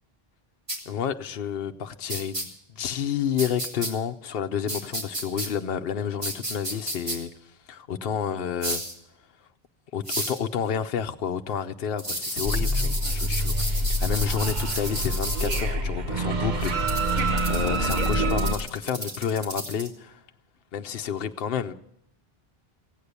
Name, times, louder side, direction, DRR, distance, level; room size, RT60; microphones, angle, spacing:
sound 1, 0.7-0.8 2.1-2.4 3.4-3.9 4.7-5.5 6.2-7.2 8.6-8.9 10.1-10.4 12.0-15.6 16.6-19.9, right 1 dB, 30° right, 2.2 m, -32 dB
voice 1, 0.9-7.3 7.7-8.8 9.9-20.2 20.7-21.7, left 8 dB, 70° left, 0.9 m, -30 dB
sound 2, 12.4-18.5, right 1 dB, 50° right, 1.1 m, -26 dB
16.5 x 8.4 x 8.0 m
omnidirectional pair, 1.0 m